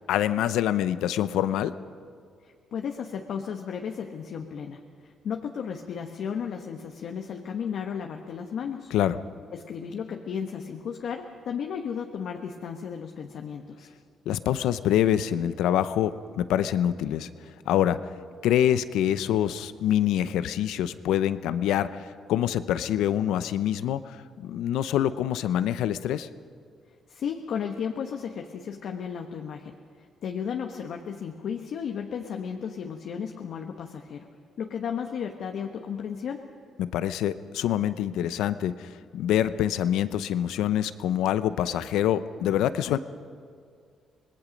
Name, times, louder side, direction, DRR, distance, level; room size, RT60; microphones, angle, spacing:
voice 1, 0.1-1.7 8.9-9.2 14.3-17.3 17.7-18.0 18.4-26.3 36.8-43.0, left 11 dB, 90° left, 13 dB, 0.7 m, -25 dB
voice 2, 2.4-8.9 9.5-13.9 27.1-29.8 30.2-34.3 34.6-36.5, left 7 dB, 70° left, 3 dB, 1.2 m, -34 dB
25.5 x 20.0 x 5.3 m, 2.2 s
cardioid pair, 90°, 0 cm